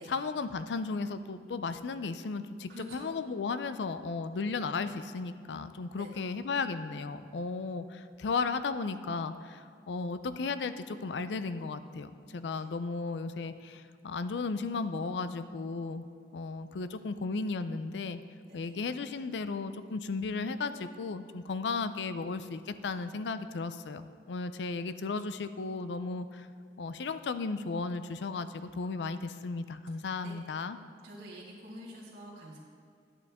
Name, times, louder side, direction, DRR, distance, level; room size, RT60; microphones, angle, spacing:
voice 1, 0.0-16.1 16.3-18.2 18.5-26.5 26.8-30.8, left 4 dB, 85° left, 12 dB, 0.4 m, -35 dB
voice 2, 2.7-3.1 6.0-6.1 12.5-12.6 18.5-18.7 30.2-30.3 31.0-32.6, equal, 85° right, -8 dB, 1.9 m, -46 dB
11.0 x 8.5 x 3.5 m, 2.3 s
head